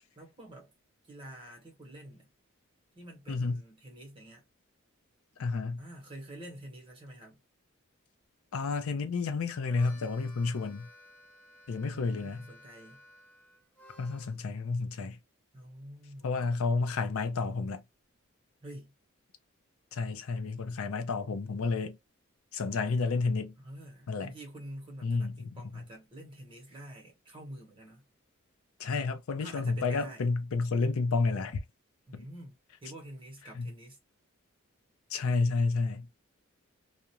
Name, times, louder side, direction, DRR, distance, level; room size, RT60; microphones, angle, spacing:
voice 1, 0.2-0.7 1.1-2.3 2.9-4.5 5.8-7.4 11.8-13.0 15.5-16.9 18.6-18.9 23.6-28.0 29.4-30.3 32.1-34.0, right 1 dB, 25° right, 0.9 m, -48 dB
voice 2, 3.3-3.6 5.4-5.8 8.5-10.9 11.7-12.5 14.0-15.2 16.2-17.8 19.9-22.0 22.5-23.5 24.1-24.3 25.0-25.8 28.8-31.6 32.1-32.3 33.5-33.7 35.1-36.1, left 4 dB, 80° left, 0.5 m, -30 dB
Harmonica, 9.6-14.4, left 2 dB, 5° left, 0.4 m, -56 dB
2.4 x 2.1 x 2.8 m
head